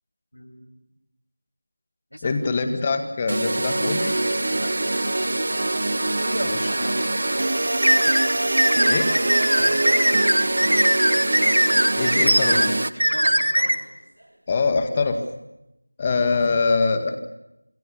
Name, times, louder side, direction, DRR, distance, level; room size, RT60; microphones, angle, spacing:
voice 1, 0.3-0.7 2.1-2.4 4.5-4.7 6.8-7.1 9.6-9.9 12.9-13.8, equal, 90° left, -1 dB, 7.9 m, -38 dB
voice 2, 2.2-4.1 6.4-6.8 8.8-9.1 11.9-12.7 14.5-15.2 16.0-17.2, left 4 dB, 20° left, 6 dB, 1.9 m, -23 dB
sound 1, 3.3-12.9, right 2 dB, 50° right, 0.8 m, -24 dB
sound 2, 6.2-9.8 11.6-11.7 12.3-14.7, right 1 dB, 65° right, 3.9 m, -39 dB
sound 3, 7.8-13.7, equal, 85° right, 2.2 m, -20 dB
27.0 x 20.5 x 7.2 m, 0.91 s
figure-of-eight pair, 170°, 0 cm